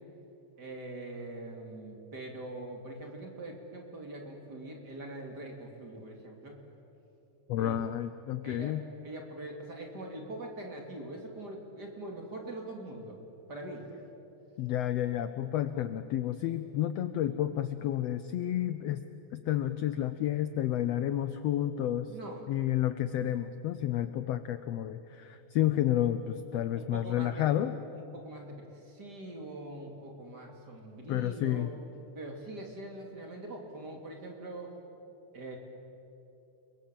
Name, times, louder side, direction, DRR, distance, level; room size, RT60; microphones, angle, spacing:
voice 1, 0.6-6.6 7.5-7.8 8.4-13.2 13.5-13.9 22.1-22.4 26.5-27.5 27.9-31.7 32.1-34.7 35.3-35.6, right 1 dB, 35° right, 1 dB, 3.0 m, -43 dB
voice 2, 7.5-8.8 14.6-19.0 19.3-22.1 22.5-27.7 31.1-31.7, left 12 dB, 75° left, 11 dB, 1.5 m, -30 dB
30.0 x 22.0 x 7.6 m, 2.9 s
omnidirectional pair, 3.6 m